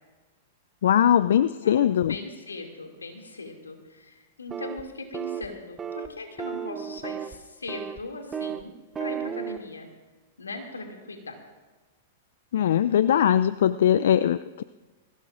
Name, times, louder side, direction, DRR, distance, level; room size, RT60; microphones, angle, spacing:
voice 1, 0.8-2.1 12.5-14.6, left 10 dB, 65° left, 15 dB, 0.4 m, -21 dB
voice 2, 1.6-8.7 9.0-9.9 10.4-11.4, left 2 dB, 85° left, 3 dB, 2.4 m, -39 dB
sound 1, 4.5-4.8 5.1-5.5 5.8-6.1 6.4-7.4 7.7-8.0 8.3-8.6 8.9-9.6, right 8 dB, 20° right, 0.7 m, -33 dB
21.5 x 16.5 x 2.5 m, 1.2 s
hypercardioid pair, 105°, 0 cm